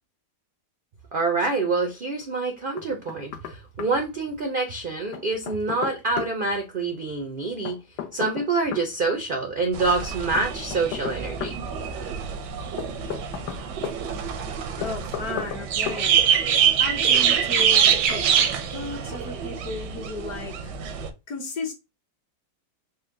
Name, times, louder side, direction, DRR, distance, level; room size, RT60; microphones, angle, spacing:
voice 1, 1.1-7.8 8.1-11.6, right 3 dB, 70° right, 0.5 m, -26 dB
Knock, 2.8-3.5 3.8-3.9 5.1-6.3 7.7-8.9 10.4-11.6 12.8-14.0 14.8-15.6 15.9-16.0, left 10 dB, 80° left, 1.2 m, -33 dB
sound 1, 9.7-21.1, right 8 dB, 85° right, 1.3 m, -25 dB
voice 2, 14.7-16.2 16.5-18.3 18.7-20.7 21.3-21.7, left 3 dB, 60° left, 1.5 m, -35 dB
4.2 x 2.2 x 3.6 m
omnidirectional pair, 1.8 m